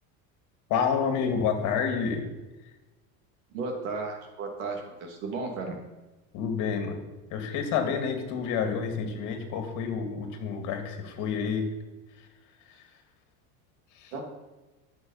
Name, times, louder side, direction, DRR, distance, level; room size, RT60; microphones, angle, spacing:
voice 1, 0.7-2.2 6.3-7.0 7.3-11.7 12.7-12.8 13.9-14.1, left 6 dB, 50° left, 5 dB, 2.3 m, -29 dB
voice 2, 3.5-5.8 14.1-14.2, right 3 dB, 85° right, 2 dB, 2.9 m, -34 dB
13.0 x 6.4 x 5.6 m, 1.1 s
cardioid pair, 145°, 38 cm